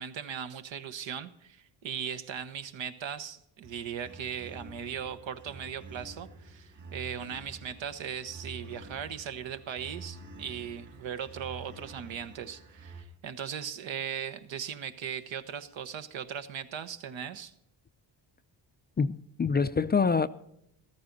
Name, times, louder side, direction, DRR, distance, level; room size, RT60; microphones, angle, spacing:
voice 1, 0.0-17.5, right 8 dB, 80° right, 1.2 m, -38 dB
sound 1, 3.6-13.0, right 3 dB, 40° right, 2.6 m, -48 dB
voice 2, 19.0-20.3, left 5 dB, 25° left, 0.4 m, -26 dB
14.5 x 13.0 x 4.0 m
cardioid pair, 105°, 45 cm